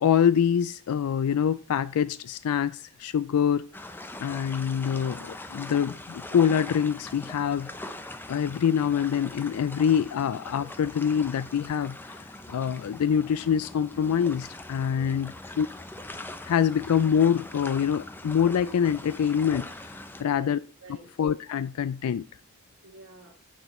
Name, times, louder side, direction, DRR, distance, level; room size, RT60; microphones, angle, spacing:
voice 1, 0.0-3.7 4.2-7.7 8.3-15.7 16.5-20.6 21.2-22.3, left 8 dB, 85° left, 0.4 m, -25 dB
sound 1, 3.7-20.2, left 1 dB, 10° left, 0.6 m, -42 dB
voice 2, 14.9-15.3 20.2-21.1 22.8-23.3, right 2 dB, 80° right, 1.7 m, -49 dB
9.3 x 6.1 x 4.2 m
head